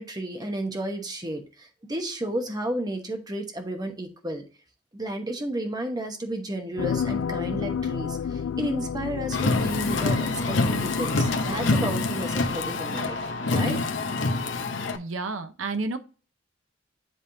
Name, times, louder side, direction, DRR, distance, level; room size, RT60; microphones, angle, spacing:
voice 1, 0.0-4.4 4.9-13.2 13.4-13.8, right 1 dB, 20° right, 4 dB, 1.0 m, -32 dB
sound 1, 6.8-12.8 13.2-13.3, left 7 dB, 85° left, 0.3 m, -32 dB
Car, 9.3-15.0, left 3 dB, 65° left, 0.9 m, -26 dB
voice 2, 14.9-16.0, right 3 dB, 90° right, 9 dB, 0.8 m, -30 dB
10.0 x 3.5 x 2.7 m, 0.36 s
head